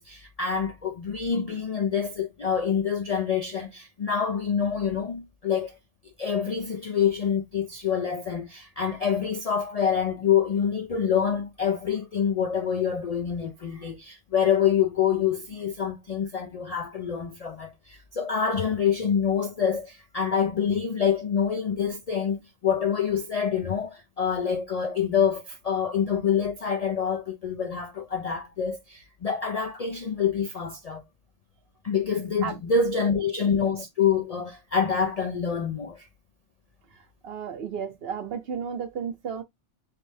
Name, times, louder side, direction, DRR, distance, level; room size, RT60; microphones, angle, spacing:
voice 1, 0.0-5.8 6.2-31.0 31.8-36.1, left 7 dB, 55° left, 0.4 m, -26 dB
voice 2, 37.2-39.4, right 7 dB, 60° right, 0.9 m, -33 dB
3.4 x 3.1 x 3.1 m
omnidirectional pair, 1.2 m